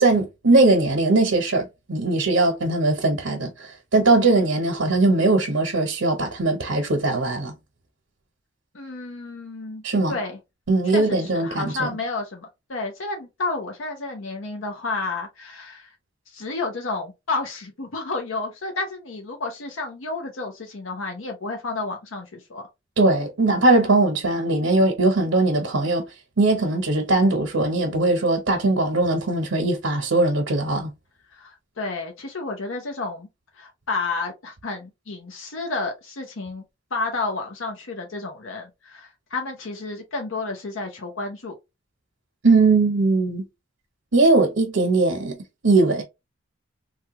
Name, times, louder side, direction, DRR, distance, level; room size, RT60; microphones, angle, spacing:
voice 1, 0.0-7.5 9.8-10.2 10.7-11.9 23.0-26.0 26.4-30.9 42.4-43.5 44.1-45.4 45.6-46.0, right 2 dB, 85° right, 0.9 m, -20 dB
voice 2, 8.7-9.8 10.1-10.4 10.9-15.9 16.3-22.6 31.3-33.3 33.5-36.6 36.9-41.6, left 3 dB, 75° left, 0.7 m, -31 dB
3.2 x 2.3 x 2.9 m
head